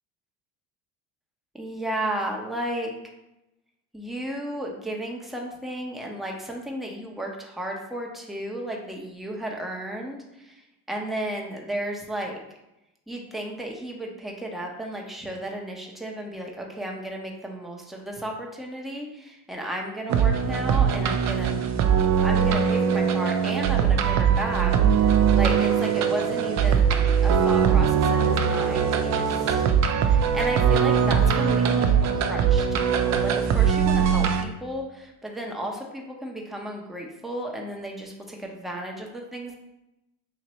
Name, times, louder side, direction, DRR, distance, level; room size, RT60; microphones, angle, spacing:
voice 1, 1.5-2.9 3.9-10.2 10.9-12.4 13.1-21.6 22.2-29.6 30.0-32.8 33.0-39.5, right 1 dB, ahead, 0 dB, 0.7 m, -33 dB
sound 1, 20.1-34.4, right 7 dB, 40° right, 0.4 m, -21 dB
3.0 x 2.9 x 4.1 m, 0.90 s
supercardioid pair, 80°, 46 cm